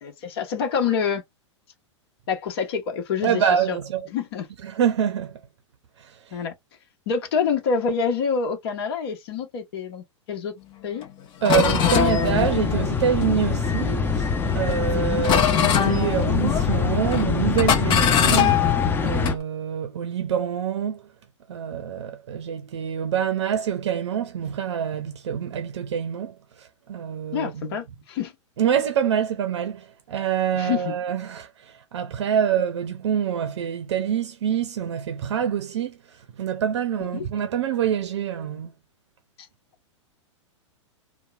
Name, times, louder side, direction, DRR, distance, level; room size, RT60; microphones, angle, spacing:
voice 1, 0.0-1.2 2.3-3.8 4.1-4.5 6.3-6.5 7.1-10.5 10.8-11.0 14.9-15.2 27.3-28.3 30.6-30.9 37.1-37.2, left 6 dB, 50° left, 1.1 m, -27 dB
voice 2, 3.2-4.0 4.6-5.4 11.4-14.3 14.5-18.6 19.0-21.0 21.5-26.3 26.9-27.8 28.6-31.5 31.9-35.9 36.4-38.7, right 9 dB, 65° right, 0.5 m, -25 dB
sound 1, 11.0-11.1 11.4-13.9 14.4-14.9 15.2-16.9 17.1-17.3 17.6-19.4, left 9 dB, 30° left, 0.9 m, -23 dB
sound 2, 11.6-19.3, left 5 dB, 15° left, 0.5 m, -24 dB
2.9 x 2.1 x 2.3 m
figure-of-eight pair, 105°, 16 cm